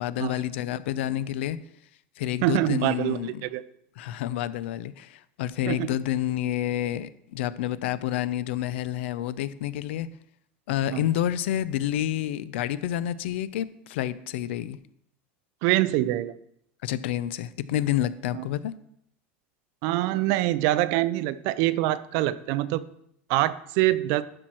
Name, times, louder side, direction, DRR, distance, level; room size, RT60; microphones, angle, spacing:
voice 1, 0.0-1.6 2.2-3.5 4.0-10.1 10.7-14.8 16.8-18.7, left 12 dB, 90° left, 17 dB, 0.5 m, -29 dB
voice 2, 2.4-3.6 5.7-5.9 10.9-11.0 15.6-16.3 18.3-18.5 19.8-22.8 23.3-24.2, right 16 dB, 60° right, 16 dB, 0.5 m, -25 dB
12.0 x 4.4 x 4.4 m, 0.74 s
supercardioid pair, 145°, 6 cm